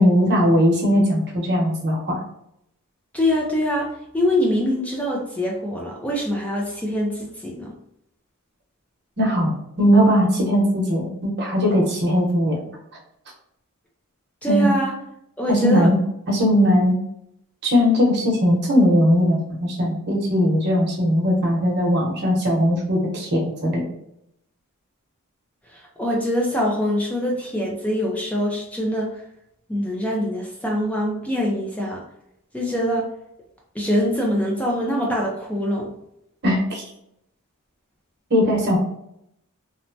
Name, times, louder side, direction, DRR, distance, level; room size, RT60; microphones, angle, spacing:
voice 1, 0.0-2.2 9.2-12.6 14.5-14.7 15.5-16.0 16.3-16.9 17.6-23.8 36.4-36.8 38.3-38.8, equal, 50° right, -2 dB, 0.9 m, -19 dB
voice 2, 3.1-7.7 14.4-14.9 15.4-15.9 25.7-29.2 29.7-32.0 32.5-33.1 33.7-35.9, equal, 5° left, -2 dB, 0.4 m, -24 dB
3.0 x 2.1 x 2.6 m, 0.77 s
head